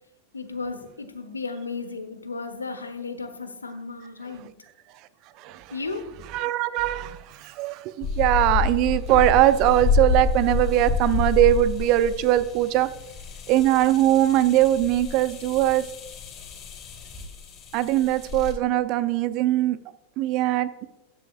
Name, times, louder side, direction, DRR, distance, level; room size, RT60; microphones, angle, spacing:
voice 1, 0.3-4.5 5.7-6.2, left 4 dB, 75° left, 1.2 m, -34 dB
voice 2, 6.3-12.9 13.5-15.8 17.7-19.8 20.2-20.7, right 14 dB, 40° right, 0.6 m, -21 dB
sound 1, 8.0-18.5, left 4 dB, 35° left, 3.4 m, -29 dB
14.0 x 10.0 x 2.5 m
figure-of-eight pair, 90°, 0 cm